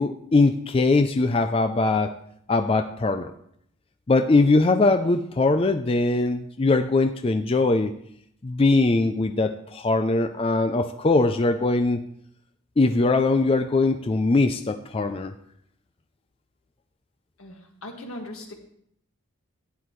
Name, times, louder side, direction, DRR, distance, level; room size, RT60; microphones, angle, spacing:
voice 1, 0.0-2.1 2.5-3.3 4.1-7.9 8.4-12.0 12.8-15.3, left 3 dB, 25° left, 8 dB, 0.4 m, -21 dB
voice 2, 17.4-18.5, left 1 dB, 85° left, 2 dB, 1.9 m, -39 dB
12.0 x 9.4 x 3.1 m, 0.69 s
head